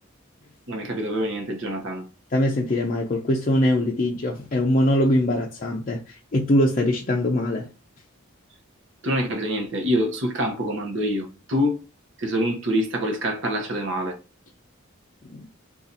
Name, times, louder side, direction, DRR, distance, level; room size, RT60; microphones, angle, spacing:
voice 1, 0.7-2.1 9.0-11.8 12.2-14.2, equal, 60° right, 0.8 m, -25 dB
voice 2, 2.3-7.7 15.3-15.4, left 1 dB, 40° left, 0.4 m, -22 dB
2.7 x 2.4 x 3.9 m
head